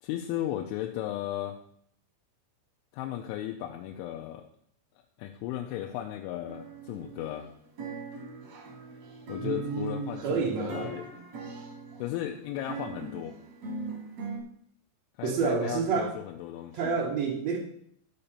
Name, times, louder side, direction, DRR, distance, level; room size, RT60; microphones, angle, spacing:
voice 1, 0.0-1.6 2.9-4.4 5.2-7.5 9.3-11.2 12.0-13.3 15.2-17.0, left 12 dB, 85° left, 2 dB, 3.1 m, -35 dB
sound 1, 6.5-7.5 7.8-14.4, right 3 dB, 60° right, 1.7 m, -41 dB
voice 2, 9.4-10.9 15.2-16.1 16.7-17.6, right 5 dB, 85° right, -1 dB, 1.5 m, -29 dB
11.5 x 4.3 x 6.8 m, 0.67 s
omnidirectional pair, 5.5 m